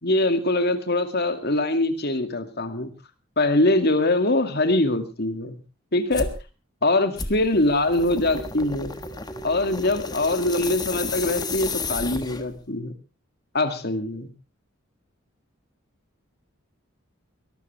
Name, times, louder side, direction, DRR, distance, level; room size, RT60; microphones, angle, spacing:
voice 1, 0.0-2.9 3.4-5.6 5.9-6.3 6.8-8.9 9.4-12.9 13.5-14.3, left 2 dB, 50° left, 8 dB, 2.2 m, -23 dB
sound 1, 6.1-6.4 7.2-12.6, left 3 dB, 20° left, 1.5 m, -32 dB
23.0 x 13.0 x 3.4 m, 0.32 s
head